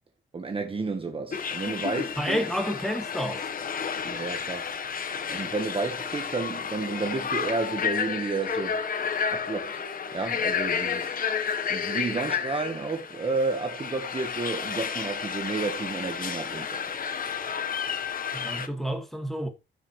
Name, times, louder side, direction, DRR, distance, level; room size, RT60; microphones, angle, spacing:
voice 1, 0.3-2.4 4.0-4.7 5.3-8.8 9.3-9.8 10.1-11.2 11.7-16.8, right 3 dB, 25° right, 1.2 m, -31 dB
sound 1, 1.3-18.7, left 7 dB, 45° left, 1.1 m, -31 dB
voice 2, 2.2-3.5 18.3-19.5, equal, ahead, 1.9 m, -30 dB
15.0 x 5.9 x 3.1 m
wide cardioid pair, 145°, 20 cm